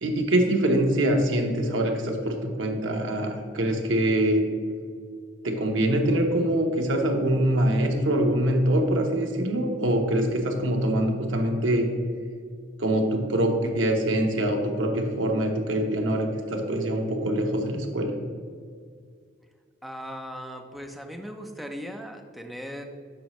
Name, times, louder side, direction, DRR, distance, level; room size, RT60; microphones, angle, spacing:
voice 1, 0.0-4.4 5.4-11.9 12.8-18.1, right 1 dB, 75° right, 2 dB, 0.9 m, -24 dB
voice 2, 19.8-22.9, equal, ahead, 3 dB, 0.4 m, -38 dB
6.9 x 4.9 x 3.0 m, 2.1 s
head